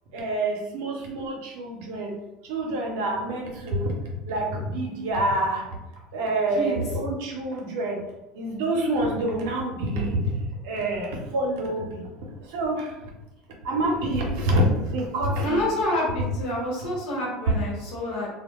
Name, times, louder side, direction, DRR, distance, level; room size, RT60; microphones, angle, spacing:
voice 1, 0.1-2.1 2.4-5.7 6.1-8.0 8.3-10.4 10.6-12.0 12.4-12.9 13.6-15.6 16.8-16.9 17.5-17.6, right 1 dB, 75° right, 0 dB, 0.7 m, -27 dB
voice 2, 15.4-18.3, left 1 dB, 65° left, -3 dB, 1.2 m, -27 dB
2.3 x 2.1 x 3.5 m, 0.96 s
supercardioid pair, 95°, 0 cm